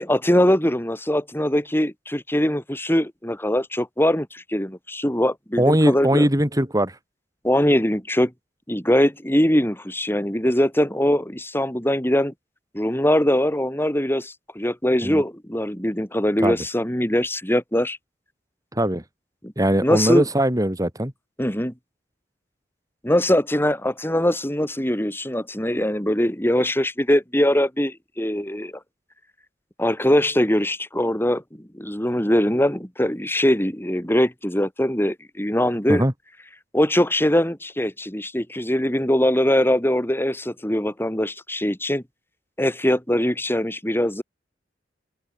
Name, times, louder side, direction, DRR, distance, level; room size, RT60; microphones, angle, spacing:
voice 1, 0.0-6.3 7.4-8.3 8.7-12.3 12.7-18.0 19.4-19.5 19.8-20.3 21.4-21.7 23.0-28.7 29.8-31.4 31.7-36.0 36.7-42.0 42.6-44.2, left 1 dB, 10° left, 4.7 m, -22 dB
voice 2, 5.6-6.9 15.0-15.2 16.4-16.6 18.7-19.0 19.6-21.1 35.9-36.1, right 1 dB, 20° right, 3.9 m, -20 dB
open air
head